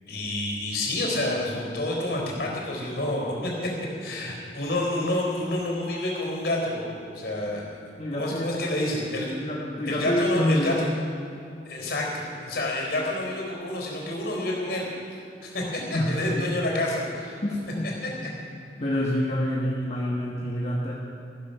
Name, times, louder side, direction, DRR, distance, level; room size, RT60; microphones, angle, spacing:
voice 1, 0.1-3.7 4.0-7.6 8.1-9.3 9.9-10.9 11.7-14.9 15.4-17.4 18.0-18.1, left 1 dB, 65° left, -1 dB, 4.0 m, -28 dB
voice 2, 8.0-8.9 9.4-10.8 15.9-16.5 17.4-17.9 18.2-18.3 18.8-20.9, left 1 dB, 35° left, -4 dB, 1.4 m, -27 dB
14.0 x 13.5 x 5.7 m, 2.5 s
head